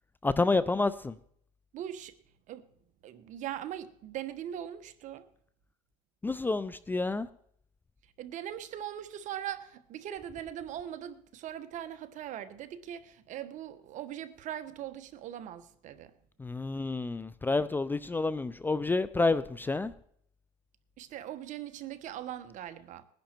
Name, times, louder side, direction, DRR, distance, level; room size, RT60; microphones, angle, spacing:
voice 1, 0.2-1.2 6.2-7.3 16.4-19.9, left 3 dB, 10° left, 0.4 m, -29 dB
voice 2, 1.7-2.1 2.5-2.7 3.0-5.3 8.2-16.1 21.0-23.0, right 11 dB, 50° right, 1.2 m, -40 dB
20.0 x 10.5 x 4.5 m
supercardioid pair, 115°, 16 cm